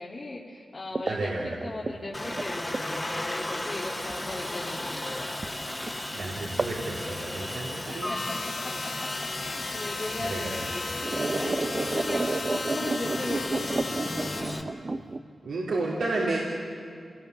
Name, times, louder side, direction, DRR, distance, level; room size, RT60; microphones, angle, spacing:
voice 1, 0.0-5.3 5.7-6.2 7.9-8.7 9.2-14.7, left 2 dB, 45° left, -5 dB, 2.8 m, -38 dB
sound 1, 0.9-3.3 4.1-4.2 5.4-5.6 5.9-6.0 6.6-6.8 7.1-7.9 9.1-9.2 10.1-10.2 10.6-15.2, right 3 dB, 45° right, 0.8 m, -31 dB
voice 2, 1.1-1.6 6.1-8.2 10.2-10.6 15.4-16.4, right 2 dB, 85° right, -5 dB, 3.1 m, -31 dB
Aircraft, 2.1-14.6, left 1 dB, 20° left, 2.5 m, -35 dB
sound 2, 8.2-14.4, left 4 dB, 75° left, 1.7 m, -36 dB
28.5 x 18.5 x 6.8 m, 2.4 s
cardioid pair, 60°, 0 cm